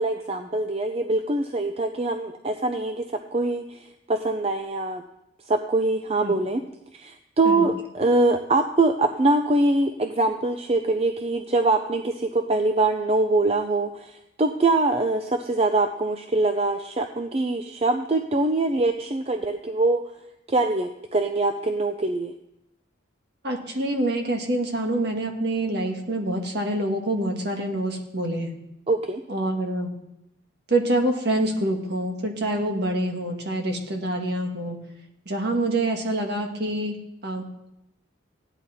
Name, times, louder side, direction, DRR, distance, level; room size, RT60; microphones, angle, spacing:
voice 1, 0.0-3.0 3.3-5.0 5.5-6.6 6.9-20.0 20.5-22.3 28.9-29.2, right 2 dB, 30° right, 6 dB, 0.5 m, -23 dB
voice 2, 23.4-28.5 29.3-29.9 30.7-34.8 35.2-37.0 37.2-37.4, right 1 dB, 50° right, 3 dB, 1.7 m, -26 dB
15.5 x 10.5 x 4.2 m, 0.87 s
head